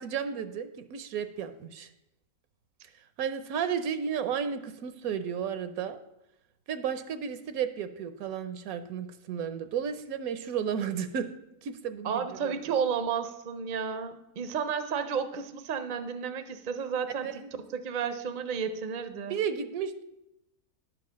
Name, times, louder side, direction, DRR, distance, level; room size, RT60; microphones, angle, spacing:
voice 1, 0.0-1.9 3.2-6.0 6.7-11.3 11.6-12.8 17.2-17.5 19.3-20.0, right 7 dB, 80° right, 10 dB, 1.1 m, -33 dB
voice 2, 12.0-17.4 17.7-19.4, right 6 dB, 50° right, 9 dB, 0.6 m, -32 dB
10.5 x 4.8 x 6.2 m, 0.87 s
omnidirectional pair, 1.5 m